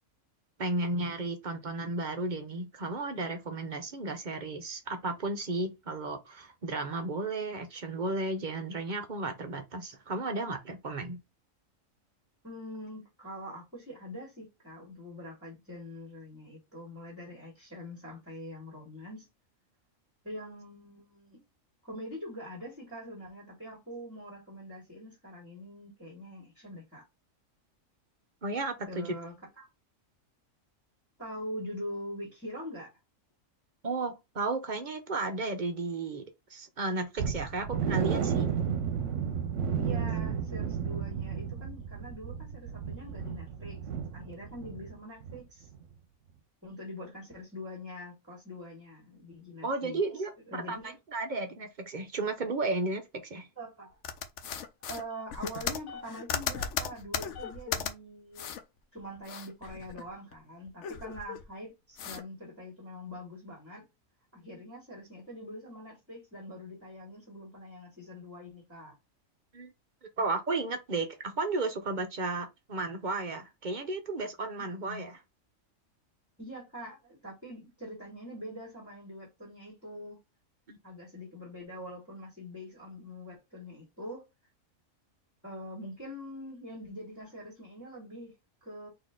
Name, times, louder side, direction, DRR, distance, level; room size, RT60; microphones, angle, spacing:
voice 1, 0.6-11.2 28.4-29.2 33.8-38.5 49.6-53.5 69.5-69.7 70.2-75.2 80.7-80.8, right 2 dB, 45° right, 0.7 m, -34 dB
voice 2, 12.4-19.3 20.2-21.4 21.8-27.0 28.9-29.6 31.2-32.9 39.8-43.8 44.1-45.7 46.6-50.0 50.5-50.9 53.6-54.0 54.9-58.5 58.9-63.9 64.3-68.9 74.7-75.1 76.4-80.2 80.8-84.3 85.4-88.9, equal, 10° right, 2.0 m, -44 dB
sound 1, 37.2-44.9 45.2-45.4 45.8-45.9, right 7 dB, 70° right, 1.0 m, -32 dB
sound 2, 54.0-57.9 58.3-58.6 59.0-60.3 60.6-61.5 62.0-62.2, left 7 dB, 65° left, 0.9 m, -36 dB
4.2 x 2.8 x 3.6 m
omnidirectional pair, 1.4 m